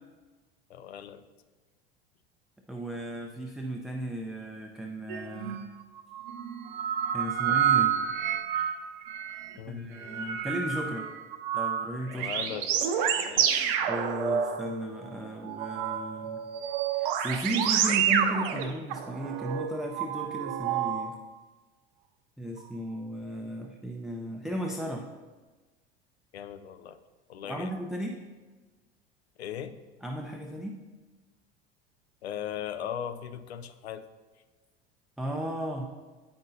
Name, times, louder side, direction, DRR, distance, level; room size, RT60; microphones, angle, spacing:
voice 1, 0.7-1.2 9.6-9.9 12.1-12.7 13.1-13.8 26.3-27.0 27.3-27.7 29.4-29.8 32.2-34.0, left 9 dB, 80° left, 11 dB, 0.5 m, -38 dB
voice 2, 2.7-5.6 7.1-7.9 9.7-11.1 11.5-12.5 13.8-16.4 16.9-21.2 22.4-25.1 27.4-28.2 30.0-30.8 35.2-35.9, right 1 dB, ahead, 1 dB, 0.4 m, -35 dB
sound 1, 5.1-5.6 6.0-9.5 10.0-15.1 15.4-21.1 22.6-22.7, right 8 dB, 60° right, 0.6 m, -29 dB
8.5 x 5.3 x 2.7 m, 1.3 s
figure-of-eight pair, 75°, 31 cm